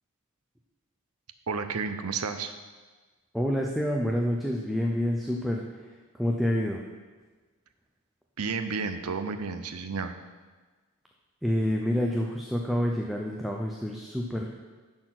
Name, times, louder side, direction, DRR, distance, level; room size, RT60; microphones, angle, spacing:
voice 1, 1.5-2.5 8.4-10.1, right 5 dB, 85° right, 9 dB, 0.7 m, -31 dB
voice 2, 3.3-6.8 11.4-14.5, equal, ahead, -1 dB, 0.6 m, -28 dB
10.5 x 4.3 x 6.0 m, 1.3 s
head